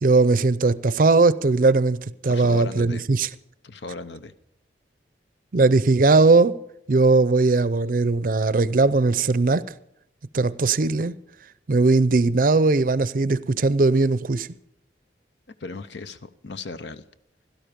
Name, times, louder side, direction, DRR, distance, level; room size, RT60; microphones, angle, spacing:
voice 1, 0.0-2.0 2.2-3.3 5.5-6.6 6.9-9.6 10.3-11.1 11.7-14.5, right 3 dB, 50° right, 0.5 m, -19 dB
voice 2, 2.3-3.0 3.6-4.3 15.6-17.0, left 3 dB, 80° left, 0.7 m, -36 dB
17.0 x 12.0 x 5.2 m
head